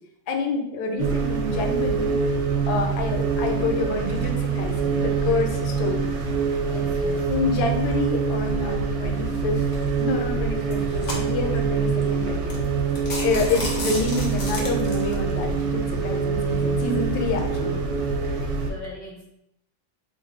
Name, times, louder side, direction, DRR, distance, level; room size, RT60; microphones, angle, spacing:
voice 1, 0.3-2.1 2.7-6.1 7.3-9.7 10.0-12.6 13.2-17.8, left 3 dB, 80° left, 3 dB, 1.3 m, -27 dB
sound 1, 1.0-18.7, right 5 dB, 70° right, 1.1 m, -25 dB
voice 2, 6.6-7.3 17.6-18.1 18.6-19.2, equal, 30° right, -7 dB, 1.1 m, -40 dB
sound 2, 9.7-10.0 10.6-11.6 12.1-12.2 12.5-12.6 12.9-15.1, left 1 dB, 60° left, 0.6 m, -32 dB
3.0 x 2.5 x 3.5 m, 0.79 s
omnidirectional pair, 2.1 m